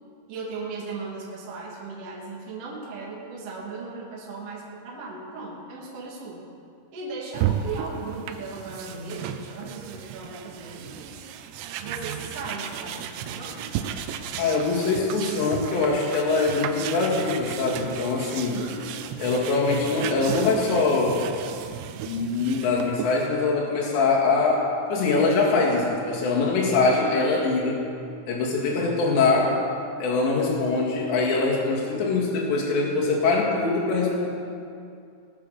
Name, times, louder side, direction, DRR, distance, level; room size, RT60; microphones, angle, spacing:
voice 1, 0.3-6.4 6.9-11.3 11.8-13.6 18.5-19.3 28.8-28.9, right 3 dB, 50° right, -4 dB, 1.9 m, -37 dB
sound 1, 7.3-23.3, right 9 dB, 85° right, 2.6 m, -34 dB
voice 2, 14.4-18.6 19.2-21.2 22.1-24.6 24.9-27.8 28.3-29.5 30.0-34.3, left 3 dB, 70° left, -3 dB, 4.3 m, -23 dB
20.0 x 7.3 x 6.6 m, 2.4 s
omnidirectional pair, 5.5 m